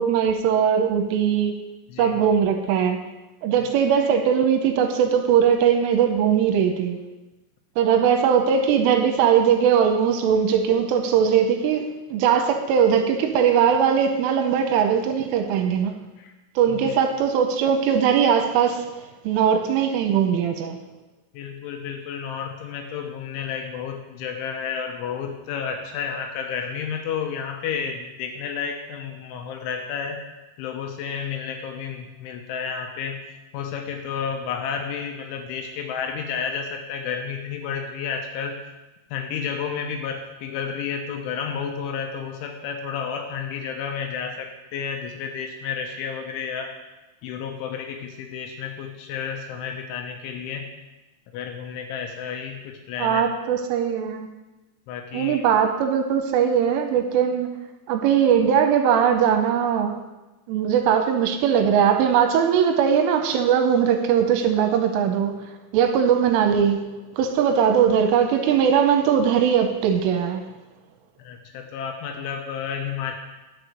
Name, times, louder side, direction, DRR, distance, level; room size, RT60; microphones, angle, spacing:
voice 1, 0.0-1.6 2.0-3.1 3.4-7.0 7.8-15.9 16.6-18.8 19.2-20.8 53.0-54.3 55.1-57.5 57.9-60.0 60.5-70.4, right 8 dB, 85° right, 6 dB, 3.2 m, -20 dB
voice 2, 1.9-2.2 16.2-16.3 16.7-17.0 21.3-30.2 30.6-33.2 33.5-38.6 39.1-46.7 47.2-50.7 51.3-53.2 54.9-55.4 71.2-73.2, left 6 dB, 80° left, 4 dB, 3.0 m, -31 dB
11.0 x 6.7 x 6.5 m, 1.1 s
omnidirectional pair, 6.0 m